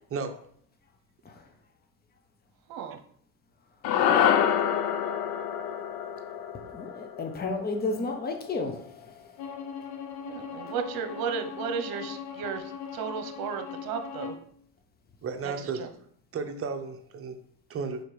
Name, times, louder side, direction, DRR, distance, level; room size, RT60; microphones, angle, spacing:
sound 1, 3.8-8.3, left 9 dB, 70° left, 0.8 m, -27 dB
voice 1, 6.7-8.7, left 3 dB, 25° left, 4 dB, 1.1 m, -31 dB
Bowed string instrument, 9.4-14.5, left 7 dB, 90° left, 1.1 m, -40 dB
voice 2, 10.3-12.6 12.9-14.3 15.4-15.5 15.8-15.9, right 7 dB, 60° right, 7 dB, 1.0 m, -34 dB
voice 3, 15.2-15.9 16.3-17.4 17.7-18.0, right 5 dB, 35° right, 6 dB, 0.9 m, -33 dB
5.0 x 4.2 x 4.8 m, 0.62 s
supercardioid pair, 100°, 41 cm